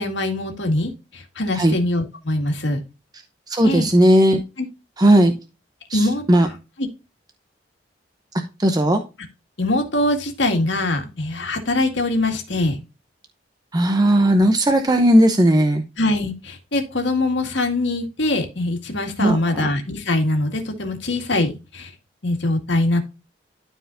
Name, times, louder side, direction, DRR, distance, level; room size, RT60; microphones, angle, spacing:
voice 1, 0.0-2.8 3.6-3.9 5.9-6.2 6.8-6.9 9.6-12.8 16.0-21.9 22.2-23.0, left 2 dB, 75° left, 4 dB, 2.0 m, -23 dB
voice 2, 3.5-4.4 5.0-5.3 5.9-6.5 8.6-9.0 13.7-15.8 19.2-19.7, right 1 dB, 20° right, 5 dB, 0.7 m, -16 dB
12.5 x 4.8 x 2.6 m, 0.28 s
head